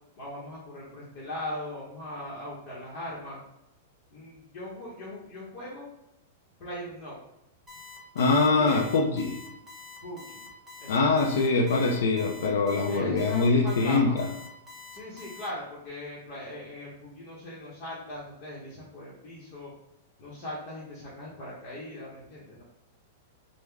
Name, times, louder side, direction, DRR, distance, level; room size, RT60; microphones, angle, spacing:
voice 1, 0.2-3.4 4.1-5.9 6.6-7.2 8.5-8.9 10.0-10.5 10.8-11.7 12.8-14.2 14.9-19.7 20.2-22.6, left 1 dB, 35° left, -6 dB, 0.9 m, -40 dB
Alarm, 7.7-15.5, left 3 dB, 15° right, 0.7 m, -46 dB
voice 2, 8.2-9.4 10.9-14.2, left 3 dB, 80° left, 0 dB, 0.5 m, -23 dB
3.5 x 2.1 x 3.3 m, 0.86 s
supercardioid pair, 160°, 0 cm